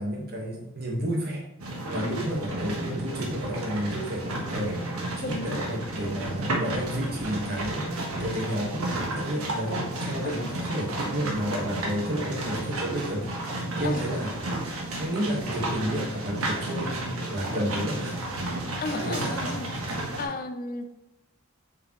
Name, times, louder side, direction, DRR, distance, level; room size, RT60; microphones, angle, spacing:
voice 1, 0.0-1.4 1.9-4.8 5.2-13.3 13.8-14.3 15.0-18.3 18.9-19.4, equal, 45° right, 0 dB, 1.4 m, -31 dB
sound 1, 1.6-20.2, right 1 dB, 85° right, 1.4 m, -32 dB
voice 2, 5.2-5.6 10.2-10.5 13.8-14.0 18.8-20.9, left 3 dB, 40° left, 9 dB, 0.4 m, -34 dB
7.5 x 5.0 x 3.1 m, 0.97 s
head